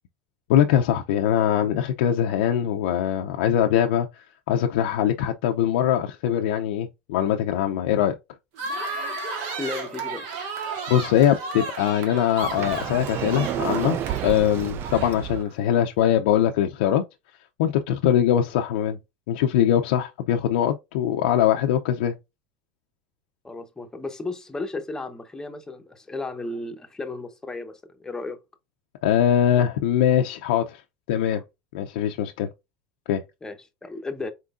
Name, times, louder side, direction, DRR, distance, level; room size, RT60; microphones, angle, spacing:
voice 1, 0.5-8.1 10.9-17.0 17.6-19.0 19.3-22.1 29.0-30.8 31.1-31.4 31.7-32.5 33.1-33.2, left 10 dB, 80° left, 0.5 m, -22 dB
sound 1, 8.6-15.5, right 3 dB, 70° right, 1.7 m, -33 dB
voice 2, 9.6-10.3 23.4-28.4 31.3-31.4 33.4-34.3, left 3 dB, 10° left, 0.8 m, -34 dB
Sliding door, 12.4-15.4, right 11 dB, 40° right, 0.4 m, -30 dB
4.4 x 3.7 x 2.5 m
supercardioid pair, 120°, 5 cm